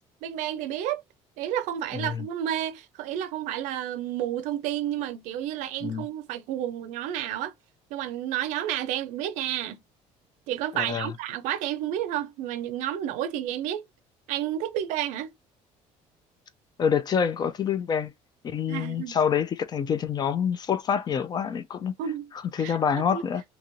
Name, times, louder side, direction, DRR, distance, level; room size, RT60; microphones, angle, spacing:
voice 1, 0.2-1.0 1.4-7.5 7.9-9.8 10.5-13.9 14.3-15.3 18.7-19.2 22.0-22.3 22.6-22.8 23.1-23.2, right 11 dB, 80° right, 0.5 m, -31 dB
voice 2, 1.9-2.3 5.8-6.1 10.7-11.1 16.8-18.1 18.4-22.0 22.5-23.4, left 7 dB, 35° left, 0.4 m, -26 dB
3.0 x 2.9 x 2.5 m
cardioid pair, 130°, 13 cm